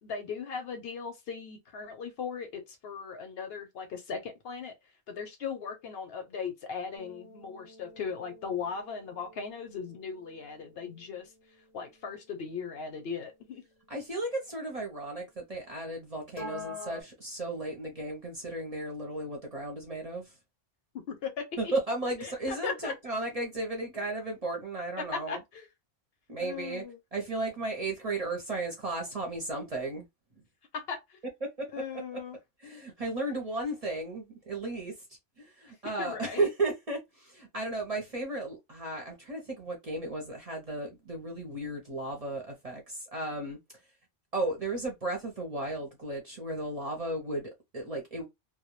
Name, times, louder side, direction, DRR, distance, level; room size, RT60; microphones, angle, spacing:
voice 1, 0.0-4.7 5.1-11.3 11.7-13.6 20.9-21.7 22.2-22.9 25.0-25.7 26.4-27.0 30.7-31.2 31.7-32.4 36.0-36.5, left 6 dB, 65° left, 0.7 m, -38 dB
sound 1, 7.0-13.2 16.4-17.0, left 2 dB, 35° left, 0.5 m, -48 dB
voice 2, 13.9-20.3 21.6-25.4 26.3-26.8 27.1-30.1 31.8-32.2 32.6-34.9 35.4-43.6 44.3-48.2, right 2 dB, 40° right, 0.6 m, -34 dB
2.2 x 2.1 x 2.9 m
omnidirectional pair, 1.2 m